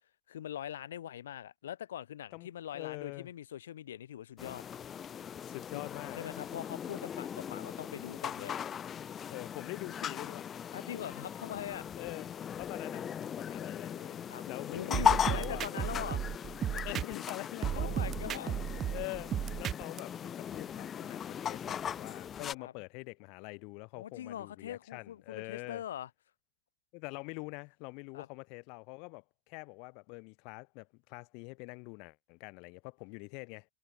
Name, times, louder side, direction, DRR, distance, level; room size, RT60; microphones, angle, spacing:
voice 1, 0.3-4.6 5.7-5.9 6.2-8.6 10.7-11.9 14.3-14.4 14.7-16.2 16.7-16.9 17.7-18.5 18.8-19.1 22.6-22.7 23.9-26.1 28.1-28.3, left 11 dB, 80° left, 3.0 m, -42 dB
voice 2, 2.7-3.3 5.5-6.2 9.3-10.5 12.0-12.3 12.6-15.0 15.3-15.7 16.8-17.9 18.9-25.8 26.9-33.7, left 33 dB, 50° left, 5.9 m, -44 dB
sound 1, 4.4-22.5, left 8 dB, 25° left, 1.5 m, -38 dB
sound 2, 14.9-17.3 17.6-20.0, right 10 dB, 30° right, 0.9 m, -34 dB
hypercardioid pair, 115°, 0 cm